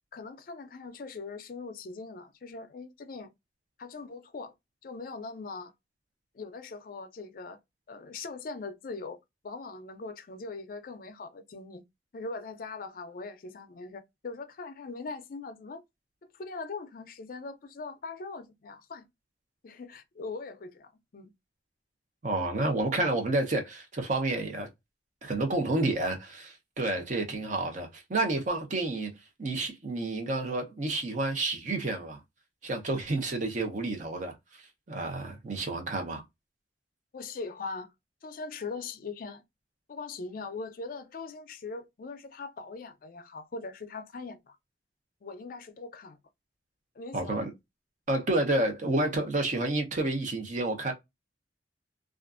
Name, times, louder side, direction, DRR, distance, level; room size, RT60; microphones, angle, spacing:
voice 1, 0.1-3.3 3.8-4.5 4.8-5.7 6.3-7.6 7.9-9.2 9.4-11.8 12.1-15.8 16.3-19.1 19.6-21.3 37.1-37.9 38.2-39.4 39.9-44.6 45.2-46.2 47.0-47.5, left 3 dB, 50° left, 0.4 m, -41 dB
voice 2, 22.2-24.7 25.2-29.1 29.4-32.2 32.6-36.2 47.1-47.5 48.1-50.9, right 2 dB, 45° right, 0.7 m, -30 dB
2.5 x 2.4 x 2.4 m
head